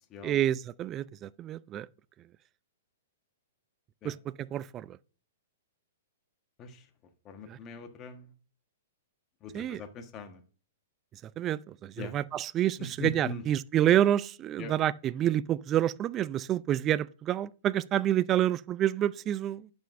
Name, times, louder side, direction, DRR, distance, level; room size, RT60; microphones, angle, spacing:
voice 1, 0.2-1.9 4.0-5.0 7.5-7.6 9.5-9.8 11.2-19.7, right 11 dB, 30° right, 0.3 m, -28 dB
voice 2, 7.2-8.3 9.4-10.4 12.0-12.1 12.8-13.4 14.6-14.7, left 3 dB, 30° left, 1.2 m, -41 dB
11.0 x 5.3 x 2.5 m
hypercardioid pair, 120°, 0 cm